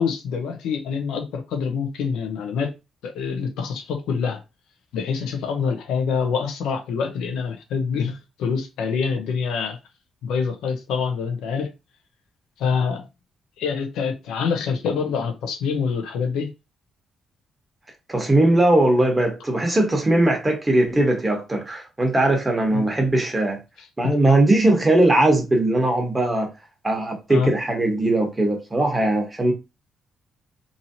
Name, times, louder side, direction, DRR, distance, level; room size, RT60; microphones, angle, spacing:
voice 1, 0.0-2.7 3.0-4.4 4.9-9.8 10.2-11.7 12.6-13.0 13.6-16.5 22.7-22.8 24.0-24.1 27.3-27.5, left 6 dB, 85° left, 0.7 m, -25 dB
voice 2, 18.1-23.6 24.0-26.5 26.8-29.5, right 1 dB, 20° right, 1.1 m, -19 dB
2.9 x 2.7 x 2.6 m
cardioid pair, 90°, 0 cm